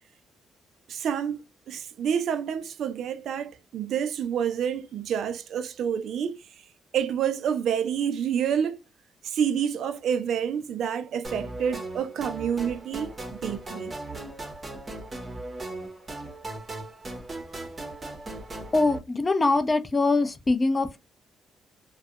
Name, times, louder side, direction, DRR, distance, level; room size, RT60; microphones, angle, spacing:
voice 1, 0.9-1.4 1.7-6.4 6.9-8.8 9.2-13.9, right 8 dB, 70° right, 0.3 m, -28 dB
sound 1, 11.2-19.0, right 2 dB, 25° right, 0.7 m, -38 dB
voice 2, 18.7-21.0, left 3 dB, 25° left, 0.5 m, -23 dB
2.3 x 2.1 x 2.7 m
cardioid pair, 90°, 0 cm